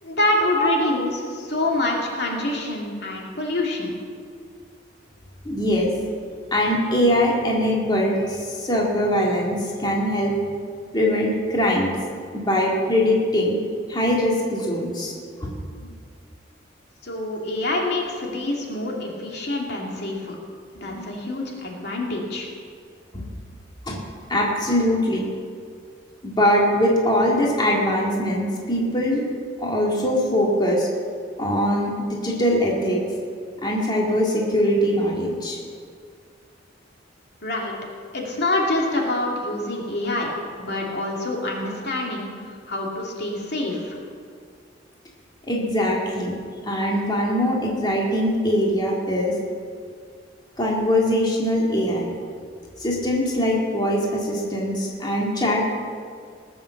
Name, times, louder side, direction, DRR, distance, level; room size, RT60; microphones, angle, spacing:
voice 1, 0.0-3.9 17.0-20.4 20.8-22.5 37.4-37.7 38.1-40.3 40.6-42.3 42.7-44.0, left 1 dB, 60° left, -1 dB, 2.6 m, -26 dB
voice 2, 5.4-5.9 6.5-10.3 10.9-11.9 12.3-13.6 13.9-15.1 15.4-15.5 15.8-15.9 20.7-21.1 23.1-23.3 23.9-24.0 24.3-25.3 26.2-29.2 29.6-30.9 31.4-33.0 33.6-35.6 45.5-46.4 46.6-49.3 50.6-52.1 52.8-55.7, equal, 25° left, -3 dB, 2.2 m, -22 dB
19.5 x 7.2 x 7.2 m, 2.1 s
head